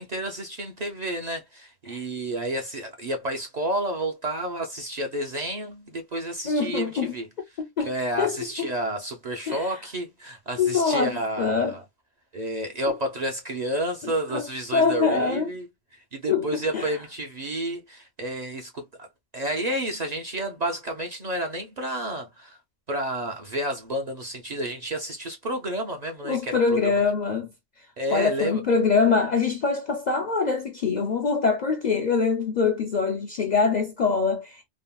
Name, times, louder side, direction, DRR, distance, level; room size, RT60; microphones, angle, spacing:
voice 1, 0.0-7.3 7.8-11.8 12.3-15.7 15.9-19.1 19.3-22.6 22.9-26.9 28.0-28.6, right 1 dB, 45° right, 0.6 m, -30 dB
voice 2, 6.4-7.1 7.6-7.9 8.2-8.3 8.6-8.7 9.5-9.7 10.6-11.8 14.3-14.4 14.7-15.5 16.3-16.5 16.7-16.9 26.2-27.5 28.1-34.7, left 5 dB, 55° left, 0.5 m, -24 dB
3.5 x 2.0 x 2.2 m
omnidirectional pair, 1.2 m